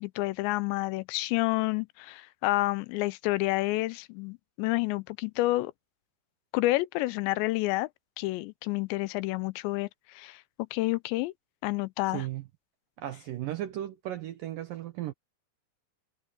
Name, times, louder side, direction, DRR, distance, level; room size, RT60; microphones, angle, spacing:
voice 1, 0.0-5.7 6.5-7.9 8.2-9.9 10.1-10.4 10.7-11.3 11.6-12.3, left 20 dB, 85° left, 2.9 m, -29 dB
voice 2, 12.1-12.4 13.0-15.1, right 13 dB, 75° right, 2.0 m, -35 dB
omnidirectional pair, 5.2 m